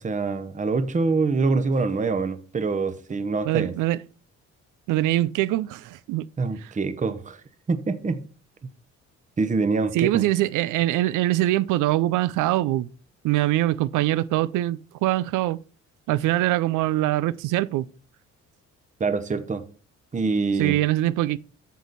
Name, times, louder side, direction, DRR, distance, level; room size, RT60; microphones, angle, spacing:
voice 1, 0.0-3.7 6.4-7.4 7.7-8.2 9.4-10.2 19.0-19.6 20.1-20.8, right 4 dB, 25° right, 0.8 m, -25 dB
voice 2, 3.4-4.0 4.9-6.3 6.6-6.7 9.9-12.9 13.2-15.6 16.1-17.9 20.6-21.4, right 15 dB, 90° right, 0.5 m, -23 dB
9.4 x 6.3 x 4.1 m
cardioid pair, 90°, 30 cm